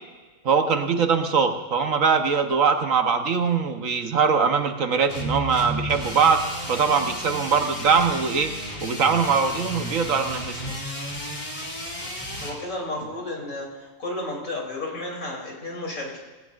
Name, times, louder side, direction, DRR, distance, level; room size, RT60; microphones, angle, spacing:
voice 1, 0.4-6.4 6.7-8.5 8.8-10.8, right 6 dB, 65° right, 5 dB, 1.4 m, -22 dB
sound 1, 5.1-12.6, equal, 30° left, 2.5 m, -33 dB
voice 2, 12.3-16.2, left 2 dB, 70° left, -2 dB, 3.9 m, -32 dB
18.5 x 17.5 x 2.5 m, 1.3 s
omnidirectional pair, 1.5 m